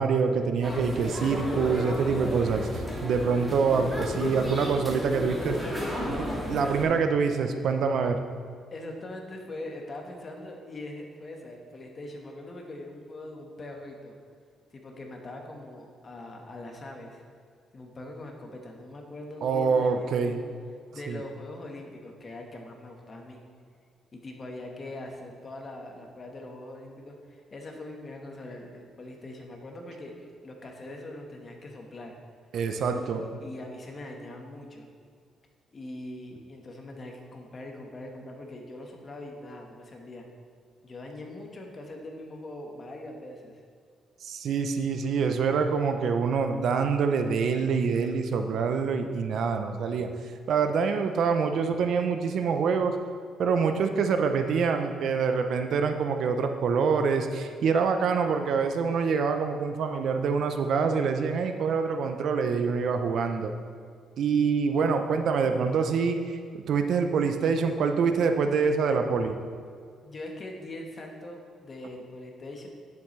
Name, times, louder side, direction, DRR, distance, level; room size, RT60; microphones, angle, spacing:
voice 1, 0.0-5.6 6.1-8.2 19.4-20.4 21.1-21.2 32.5-33.2 44.2-50.1 50.5-53.0 53.4-63.5 64.2-66.2 66.5-69.3, right 5 dB, 70° right, 6 dB, 0.6 m, -26 dB
sound 1, 0.6-6.8, left 1 dB, ahead, 2.4 m, -32 dB
voice 2, 8.7-14.2 14.7-17.2 17.7-20.5 20.9-23.4 24.1-32.1 32.9-34.9 35.7-40.3 40.8-43.6 70.0-72.7, left 1 dB, 40° left, 2 dB, 1.3 m, -42 dB
10.5 x 7.0 x 3.2 m, 2.1 s
cardioid pair, 90°, 0 cm